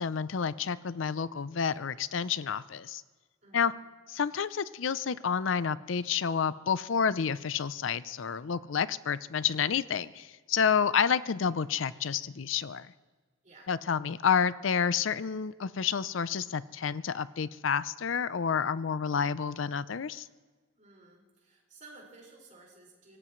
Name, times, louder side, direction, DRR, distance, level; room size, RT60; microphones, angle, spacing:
voice 1, 0.0-3.0 3.5-3.7 4.1-12.9 13.7-20.3, left 7 dB, 70° left, 16 dB, 0.5 m, -29 dB
voice 2, 3.4-3.8 10.7-11.0 13.4-13.7 20.7-23.2, right 3 dB, 40° right, -3 dB, 5.3 m, -55 dB
25.0 x 18.5 x 3.2 m, 1.3 s
head